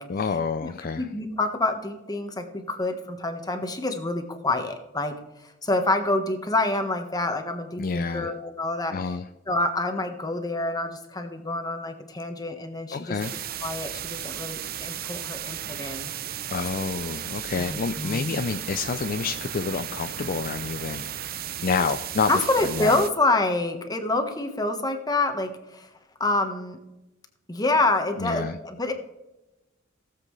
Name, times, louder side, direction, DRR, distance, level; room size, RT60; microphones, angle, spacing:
voice 1, 0.1-1.1 7.8-8.3 8.9-9.3 12.9-13.3 16.5-21.1 21.6-23.0 28.2-28.6, left 5 dB, 45° left, 9 dB, 0.4 m, -28 dB
voice 2, 1.0-5.1 5.6-9.0 9.5-13.1 13.6-16.1 17.5-18.4 22.3-25.9 26.2-26.8 27.5-28.9, left 2 dB, 20° left, 6 dB, 1.3 m, -27 dB
sound 1, 13.2-23.1, right 10 dB, 50° right, 0.6 m, -35 dB
18.0 x 7.6 x 3.2 m, 0.99 s
head